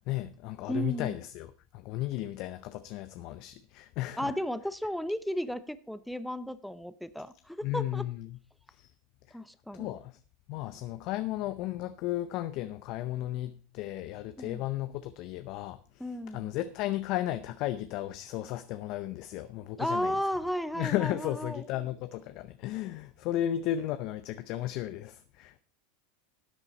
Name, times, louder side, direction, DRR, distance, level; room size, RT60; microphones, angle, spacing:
voice 1, 0.1-4.3 7.6-8.3 8.8-8.9 9.7-10.2 10.5-15.8 16.3-20.1 20.8-25.6, left 14 dB, 55° left, 0.6 m, -34 dB
voice 2, 0.7-1.2 4.2-8.1 9.3-10.0 14.4-14.6 16.0-16.5 19.8-21.7, equal, ahead, 0.7 m, -34 dB
12.5 x 8.1 x 4.2 m
hypercardioid pair, 95°, 0 cm